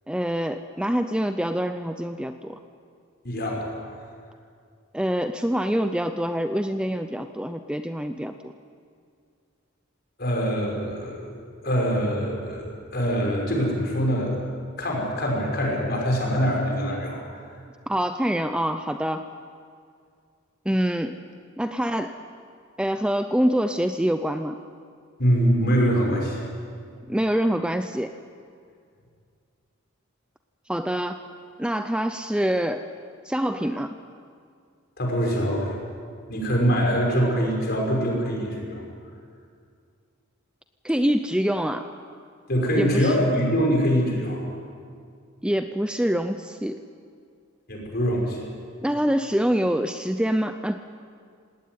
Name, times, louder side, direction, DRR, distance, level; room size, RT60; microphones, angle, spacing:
voice 1, 0.1-2.6 4.9-8.5 17.9-19.3 20.7-21.2 21.6-22.1 22.8-24.6 27.1-28.1 30.7-31.2 31.6-32.8 33.2-33.9 40.8-41.9 42.7-43.1 45.4-46.8 48.8-50.8, equal, 5° right, 8 dB, 0.5 m, -25 dB
voice 2, 3.2-3.8 10.2-11.3 11.6-12.7 12.9-14.4 14.8-17.2 25.2-26.4 35.0-35.8 36.3-38.8 42.5-44.4 47.7-48.4, equal, 50° left, 0 dB, 5.7 m, -24 dB
19.0 x 18.5 x 9.5 m, 2.2 s
head